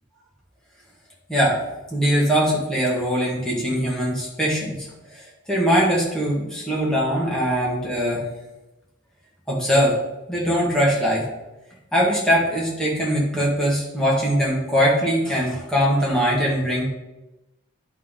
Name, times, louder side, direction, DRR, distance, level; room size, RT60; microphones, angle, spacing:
voice 1, 1.3-1.6 1.9-4.9 5.1-8.3 9.5-10.0 10.3-11.2 11.9-16.9, equal, 5° left, -5 dB, 1.9 m, -21 dB
10.0 x 3.7 x 5.4 m, 1.0 s
head